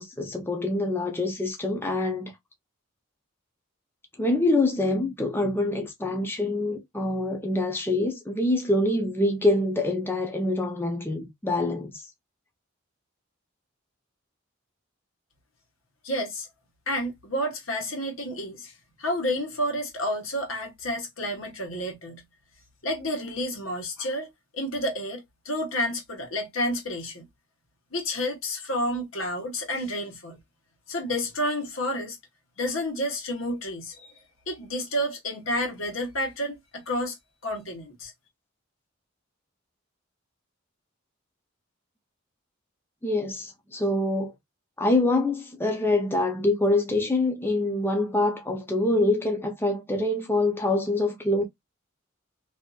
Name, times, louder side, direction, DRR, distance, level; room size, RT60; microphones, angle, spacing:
voice 1, 0.0-2.3 4.2-12.0 43.0-44.3 44.8-51.4, left 2 dB, 10° left, 0.5 m, -25 dB
voice 2, 16.0-16.5 16.9-18.7 19.0-22.2 22.8-27.3 27.9-30.4 30.9-32.2 32.6-34.1 34.5-37.2 37.4-38.1, equal, 90° left, 1.1 m, -30 dB
2.7 x 2.5 x 2.3 m
head